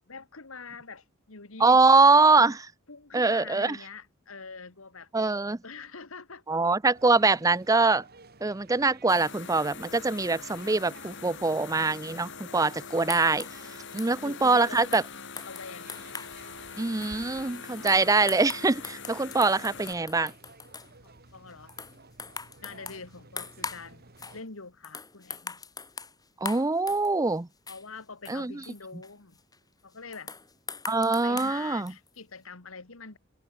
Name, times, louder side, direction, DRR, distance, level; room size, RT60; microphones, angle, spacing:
voice 1, 0.1-1.8 2.9-5.1 5.6-6.4 13.9-15.0 15.4-16.0 21.0-21.7 22.6-25.6 27.7-29.4 29.8-30.3 31.2-33.2, left 4 dB, 80° left, 2.0 m, -44 dB
voice 2, 1.6-2.7 3.1-3.8 5.1-5.6 6.5-8.0 8.4-13.5 13.9-15.0 16.8-20.3 26.4-27.5 28.3-28.5 30.9-31.9, right 3 dB, 15° right, 0.6 m, -23 dB
sound 1, 6.9-24.4, right 3 dB, 50° right, 2.7 m, -54 dB
sound 2, 9.1-19.9, left 6 dB, 60° left, 4.5 m, -43 dB
sound 3, 12.8-16.4 16.8-20.9 21.5-23.9 24.2-24.4 24.8-27.4 27.7-29.6 30.1-32.2, left 5 dB, 20° left, 3.9 m, -42 dB
head